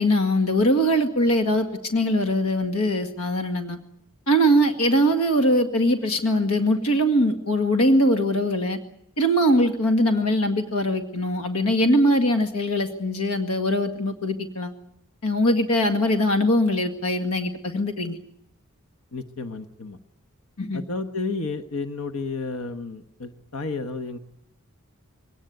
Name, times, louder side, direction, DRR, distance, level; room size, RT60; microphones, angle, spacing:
voice 1, 0.0-3.8 4.3-8.8 9.2-14.7 15.2-18.2 20.6-20.8, equal, 85° left, 5 dB, 2.0 m, -22 dB
voice 2, 19.1-20.0 20.7-24.2, left 3 dB, 70° left, 8 dB, 1.3 m, -31 dB
22.5 x 18.5 x 9.6 m, 0.76 s
head